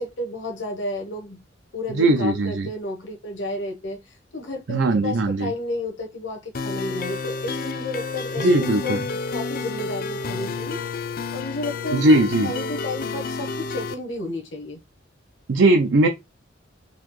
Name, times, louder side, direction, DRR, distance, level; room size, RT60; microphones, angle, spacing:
voice 1, 0.0-1.4 1.7-9.0 9.3-14.8, left 2 dB, 80° left, 0.8 m, -32 dB
voice 2, 1.9-2.7 4.7-5.5 8.4-9.0 11.9-12.5 15.5-16.1, right 2 dB, 80° right, 0.5 m, -19 dB
sound 1, 6.5-13.9, left 4 dB, 50° left, 0.5 m, -30 dB
4.0 x 2.7 x 3.0 m
head